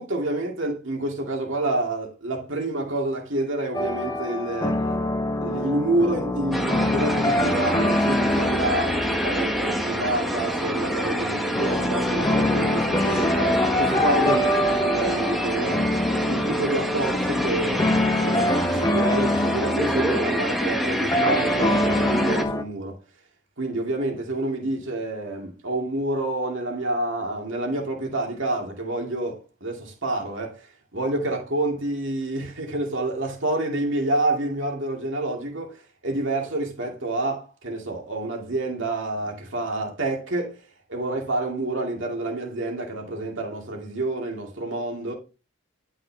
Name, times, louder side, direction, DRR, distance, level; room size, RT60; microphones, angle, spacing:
voice 1, 0.0-4.8 5.4-15.9 16.3-17.9 18.2-23.0 23.6-40.6 40.9-45.1, right 2 dB, 55° right, 2.4 m, -28 dB
sound 1, 3.7-22.6, left 1 dB, 15° left, 0.6 m, -25 dB
sound 2, 6.5-22.4, equal, ahead, 1.0 m, -27 dB
11.0 x 5.8 x 3.5 m
head